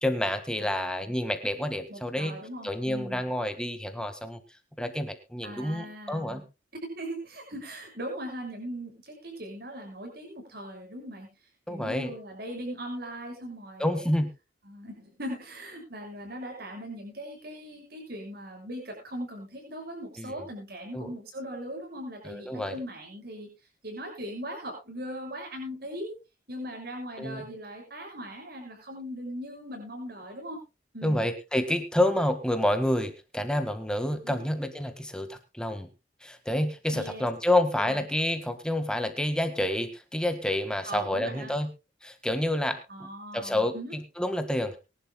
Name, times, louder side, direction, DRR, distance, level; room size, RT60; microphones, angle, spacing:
voice 1, 0.0-2.4 2.6-4.4 4.8-6.4 11.7-12.1 13.8-14.3 20.2-20.4 20.9-21.1 22.2-22.7 27.2-27.5 31.0-35.9 36.2-41.7 42.0-42.8 43.3-44.8, left 1 dB, 5° left, 8 dB, 1.6 m, -28 dB
voice 2, 0.6-1.1 1.9-3.2 5.4-6.4 6.9-11.3 11.7-14.1 14.7-23.5 23.8-26.1 26.5-30.6 30.9-31.3 34.2-34.4 36.9-37.3 37.8-38.0 40.8-41.5 42.9-43.9, equal, 55° right, 2 dB, 6.5 m, -39 dB
23.5 x 11.5 x 2.2 m, 0.29 s
head